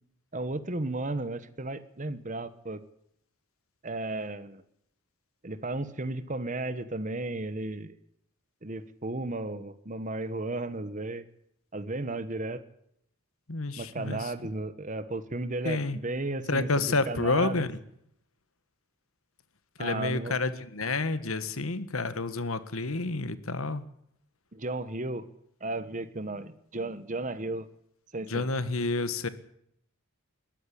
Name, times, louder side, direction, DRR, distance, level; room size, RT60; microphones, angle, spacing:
voice 1, 0.3-2.8 3.8-4.6 5.4-8.0 8.6-11.3 11.7-12.6 13.8-17.6 19.8-20.4 24.5-25.3 25.6-27.7 28.1-28.5, right 2 dB, 35° right, 13 dB, 1.1 m, -34 dB
voice 2, 13.5-14.3 15.6-16.0 16.5-17.8 19.8-23.8 28.3-29.3, left 3 dB, 80° left, 13 dB, 1.7 m, -29 dB
21.5 x 13.5 x 10.0 m, 0.73 s
head